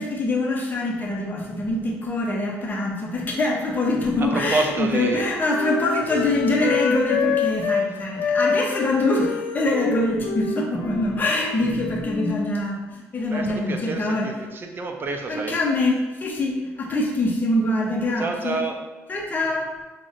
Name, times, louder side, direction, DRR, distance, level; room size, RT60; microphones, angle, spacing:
voice 1, 0.0-14.3 15.3-18.6 19.1-19.7, left 2 dB, 30° left, -1 dB, 0.6 m, -24 dB
Wind instrument woodwind instrument, 4.0-7.9 8.2-11.7 12.0-12.6, left 6 dB, 85° left, 0.3 m, -27 dB
voice 2, 4.2-5.2 6.5-6.6 13.3-15.6 18.2-18.8, right 3 dB, 35° right, 4 dB, 0.5 m, -28 dB
3.7 x 2.1 x 2.5 m, 1.2 s
supercardioid pair, 70°, 6 cm